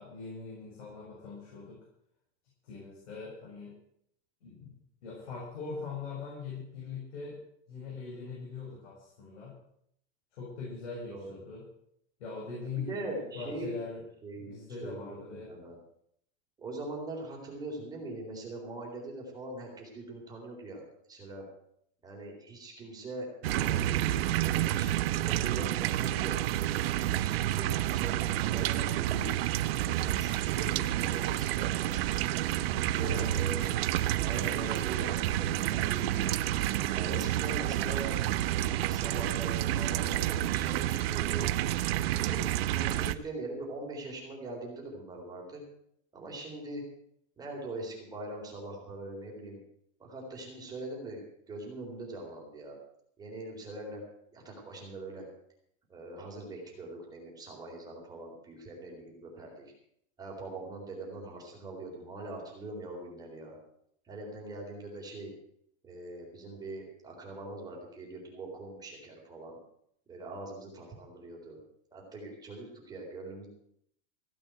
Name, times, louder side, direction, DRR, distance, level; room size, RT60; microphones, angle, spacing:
voice 1, 0.0-1.8 2.6-3.8 4.4-7.4 7.7-9.6 10.3-11.7 12.2-14.0 14.3-15.6 33.0-33.8 34.6-35.9, left 4 dB, 80° left, -4 dB, 6.7 m, -42 dB
voice 2, 12.8-13.8 14.2-14.5 14.8-15.8 16.6-20.8 21.1-21.4 22.0-26.3 27.0-29.3 29.8-32.2 32.7-33.7 34.2-36.3 36.9-38.2 38.6-41.4 42.1-45.6 46.1-46.8 47.4-49.6 50.0-51.2 51.5-52.8 53.2-54.0 54.3-55.3 55.9-59.7 60.2-63.6 64.0-65.3 65.8-69.6 70.1-71.6 71.9-73.5, right 2 dB, 10° right, -1 dB, 3.9 m, -42 dB
sound 1, 23.4-43.1, right 13 dB, 60° right, 0.8 m, -29 dB
15.5 x 8.8 x 7.8 m, 0.71 s
supercardioid pair, 165°, 34 cm